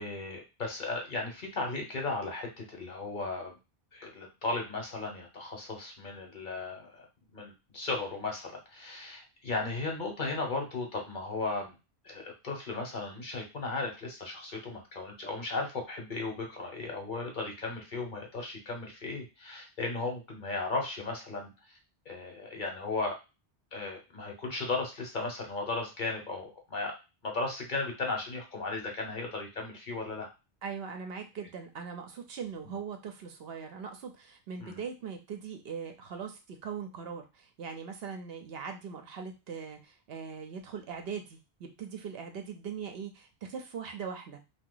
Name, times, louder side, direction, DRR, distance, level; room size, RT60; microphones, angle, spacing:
voice 1, 0.0-3.5 3.9-7.1 7.3-11.8 12.0-21.8 22.1-23.2 23.7-27.0 27.2-30.3 32.6-32.7 34.6-34.8, left 3 dB, 50° left, 2 dB, 1.0 m, -36 dB
voice 2, 30.6-44.4, right 6 dB, 70° right, 5 dB, 0.8 m, -40 dB
2.8 x 2.2 x 3.8 m, 0.27 s
omnidirectional pair, 1.1 m